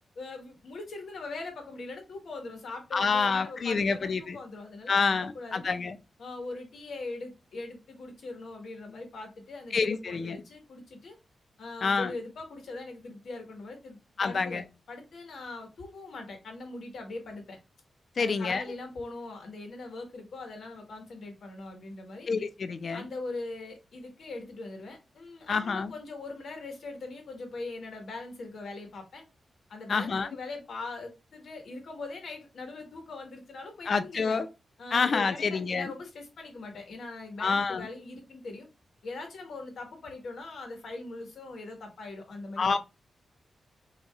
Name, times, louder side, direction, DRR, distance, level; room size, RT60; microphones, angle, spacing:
voice 1, 0.1-5.7 6.2-11.1 11.6-14.6 14.9-17.6 18.2-22.3 22.9-29.2 29.7-34.4 34.8-38.7 39.0-42.8, left 3 dB, 70° left, 1.5 m, -41 dB
voice 2, 2.9-4.4 4.9-6.0 9.7-10.4 11.8-12.1 14.2-14.6 18.2-18.6 22.3-23.1 25.5-25.9 29.9-30.3 33.9-34.5 34.9-35.9 37.4-37.9 42.6-42.8, left 4 dB, 50° left, 0.4 m, -27 dB
6.0 x 2.8 x 2.4 m
wide cardioid pair, 145°, 0 cm